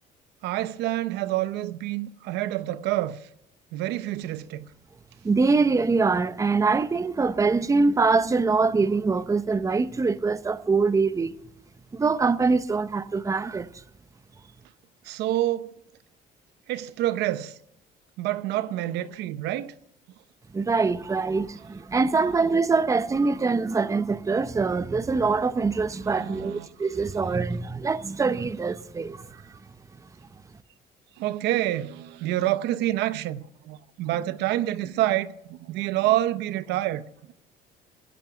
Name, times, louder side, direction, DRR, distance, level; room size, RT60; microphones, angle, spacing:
voice 1, 0.4-3.2 3.7-4.7 15.0-15.7 16.7-17.6 18.2-19.7 26.2-26.7 31.2-37.0, right 14 dB, 85° right, 0.8 m, -27 dB
voice 2, 5.2-11.4 11.9-13.7 20.5-29.3, right 4 dB, 20° right, 0.7 m, -24 dB
11.0 x 10.5 x 9.1 m
cardioid pair, 110°, 17 cm